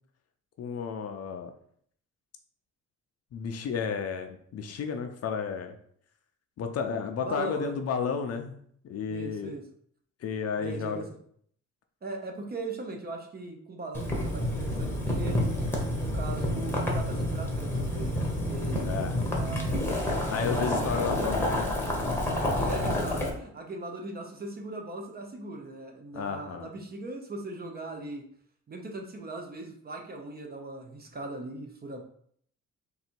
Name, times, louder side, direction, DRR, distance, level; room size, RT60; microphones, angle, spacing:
voice 1, 0.6-1.5 3.3-5.8 6.6-8.6 8.8-9.6 10.2-11.1 18.9-19.1 20.3-21.7 26.1-26.7, left 6 dB, 50° left, 5 dB, 0.6 m, -32 dB
voice 2, 7.2-7.8 9.1-9.6 10.6-11.1 12.0-15.4 16.0-18.8 19.3-21.3 22.6-28.2 28.7-32.0, right 2 dB, 30° right, 3 dB, 0.7 m, -39 dB
Boiling, 13.9-23.3, left 1 dB, 5° left, 1.0 m, -29 dB
3.9 x 2.7 x 4.4 m, 0.63 s
cardioid pair, 130°, 31 cm